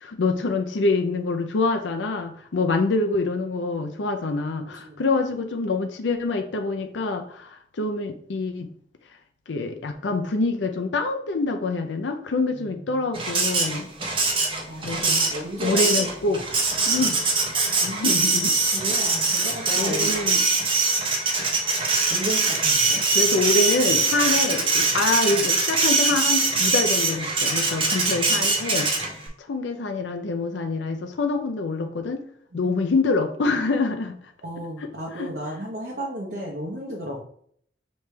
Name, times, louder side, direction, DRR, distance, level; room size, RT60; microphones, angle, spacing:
voice 1, 0.0-7.5 7.8-8.7 9.5-13.9 14.8-15.2 15.6-16.4 16.9-17.2 17.8-18.5 19.8-20.4 23.1-28.9 29.5-32.2 32.5-34.2 34.8-34.9 35.2-35.3, left 3 dB, 90° left, 5 dB, 0.5 m, -25 dB
voice 2, 12.5-13.3 14.7-16.4 18.7-20.1 22.1-23.0 27.9-28.4 32.5-32.7 34.4-37.2, equal, 60° right, -3 dB, 0.8 m, -34 dB
Printer, 13.1-29.3, right 3 dB, 30° right, 0.8 m, -23 dB
5.0 x 3.2 x 3.2 m, 0.63 s
head